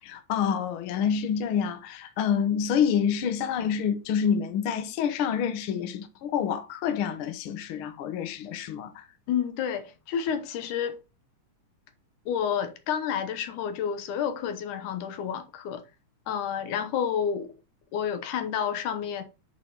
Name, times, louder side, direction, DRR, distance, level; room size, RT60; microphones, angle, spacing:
voice 1, 0.0-9.0, left 7 dB, 60° left, 1.5 m, -27 dB
voice 2, 9.3-11.0 12.3-15.8 16.3-17.5 17.9-19.2, left 8 dB, 90° left, 2.6 m, -30 dB
8.7 x 4.3 x 3.9 m
omnidirectional pair, 3.4 m